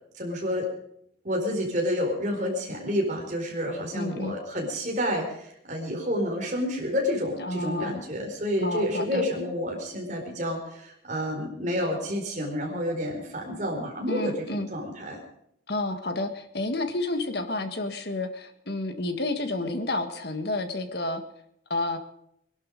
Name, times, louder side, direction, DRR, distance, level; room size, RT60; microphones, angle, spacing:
voice 1, 0.1-0.7 1.2-15.2, equal, 40° right, 0 dB, 4.5 m, -29 dB
voice 2, 3.9-4.4 7.4-8.0 8.6-9.2 14.1-14.7 15.7-21.2 21.7-22.0, left 2 dB, 55° left, 8 dB, 1.7 m, -30 dB
21.0 x 11.5 x 5.2 m, 0.74 s
head